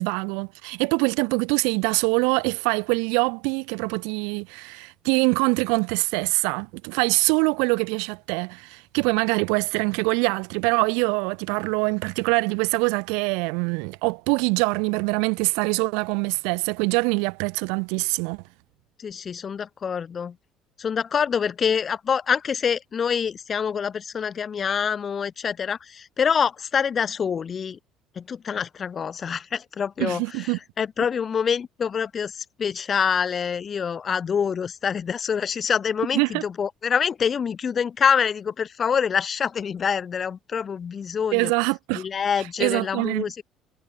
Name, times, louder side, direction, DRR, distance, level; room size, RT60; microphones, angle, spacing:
voice 1, 0.0-18.4 30.0-30.6 36.1-36.4 41.3-42.0 42.6-43.2, right 35 dB, 65° right, 0.9 m, -24 dB
voice 2, 19.0-20.3 20.8-27.8 28.2-30.5 30.8-41.5 41.9-43.4, left 7 dB, 40° left, 1.1 m, -26 dB
figure-of-eight pair, 55°, 0 cm